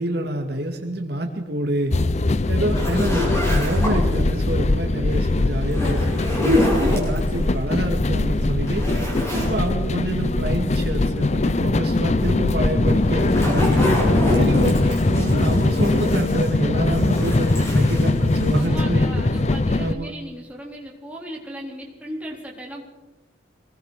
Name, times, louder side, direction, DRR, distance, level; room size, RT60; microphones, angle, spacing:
voice 1, 0.0-1.9 2.5-6.1 6.4-19.1 19.8-20.1, right 1 dB, 55° right, 3 dB, 2.2 m, -27 dB
sound 1, 1.9-19.9, left 2 dB, 35° left, 0.6 m, -21 dB
sound 2, 2.7-4.2 5.6-7.4 7.9-8.0 8.4-9.6 9.9-10.0 12.8-16.6 16.9-18.7, left 1 dB, 15° left, 7.0 m, -27 dB
voice 2, 18.5-22.9, right 1 dB, 5° right, -2 dB, 4.1 m, -36 dB
26.5 x 20.5 x 5.0 m, 1.1 s
head